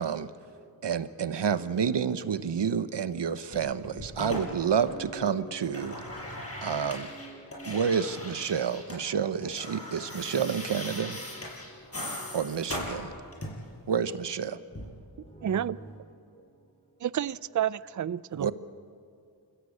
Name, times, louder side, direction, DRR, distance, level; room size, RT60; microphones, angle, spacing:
voice 1, 0.0-0.6 1.2-1.4 4.2-8.1 8.5-8.6 10.8-11.5 12.2-12.4 15.3-16.0, right 2 dB, 15° left, 4.0 m, -48 dB
voice 2, 0.8-5.9 6.6-7.1 7.6-11.2 12.3-13.1 13.9-14.6 18.3-18.5, right 7 dB, 70° right, 0.9 m, -29 dB
sound 1, 3.5-5.2 5.5-9.0 9.3-13.7 14.7-14.9, left 1 dB, 30° left, 5.5 m, -39 dB
voice 3, 15.4-15.8 17.0-18.5, right 10 dB, 45° right, 0.5 m, -30 dB
29.0 x 15.0 x 8.4 m
wide cardioid pair, 70°, 44 cm